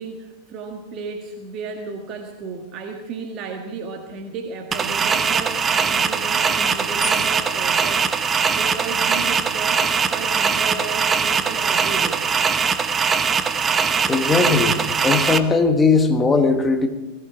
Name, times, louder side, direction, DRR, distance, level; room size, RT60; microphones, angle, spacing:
voice 1, 0.0-12.3, right 4 dB, 35° right, 3 dB, 1.7 m, -34 dB
sound 1, 4.7-15.4, right 6 dB, 20° right, 1.0 m, -21 dB
sound 2, 7.0-8.8, left 3 dB, ahead, 4.8 m, -38 dB
voice 2, 14.1-16.9, left 4 dB, 15° left, 6 dB, 1.7 m, -18 dB
20.0 x 14.5 x 4.8 m, 1.1 s
figure-of-eight pair, 90°, 0 cm